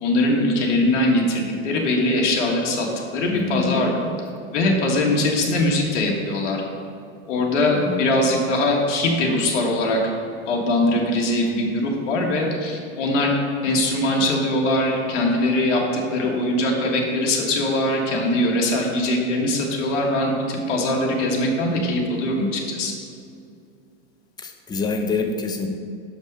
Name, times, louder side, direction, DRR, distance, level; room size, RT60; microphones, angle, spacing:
voice 1, 0.0-2.9 3.1-4.1 4.5-6.6 7.3-10.0 10.5-13.3 13.6-22.9, left 1 dB, 85° left, 0 dB, 1.6 m, -21 dB
voice 2, 3.3-3.8 7.9-8.0 24.4-25.7, left 4 dB, 10° left, 4 dB, 0.5 m, -26 dB
6.5 x 5.3 x 5.3 m, 2.5 s
supercardioid pair, 130°, 35 cm